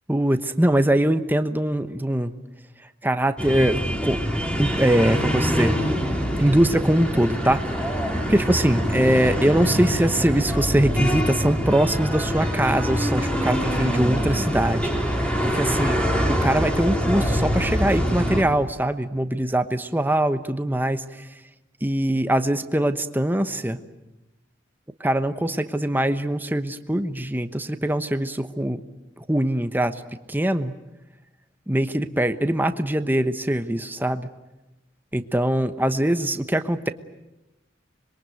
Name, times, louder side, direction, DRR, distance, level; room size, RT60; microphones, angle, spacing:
voice 1, 0.1-2.3 3.0-4.2 4.6-5.7 6.4-7.6 8.3-14.9 15.4-21.3 21.8-23.8 25.0-28.8 29.2-30.0 30.3-30.7 31.7-34.3 35.1-36.9, right 1 dB, 10° right, 9 dB, 1.1 m, -22 dB
sound 1, 3.4-18.4, equal, 5° left, 3.2 m, -24 dB
26.0 x 22.5 x 9.3 m, 0.99 s
head